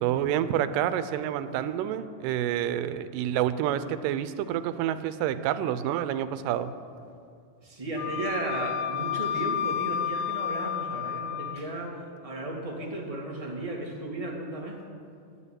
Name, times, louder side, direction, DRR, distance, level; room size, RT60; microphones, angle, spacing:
voice 1, 0.0-6.7, right 11 dB, 90° right, 12 dB, 2.3 m, -28 dB
voice 2, 7.6-14.8, right 1 dB, 15° right, -2 dB, 1.3 m, -34 dB
Wind instrument woodwind instrument, 8.0-11.6, left 9 dB, 85° left, 2.3 m, -31 dB
11.0 x 10.0 x 9.8 m, 2.3 s
omnidirectional pair, 3.8 m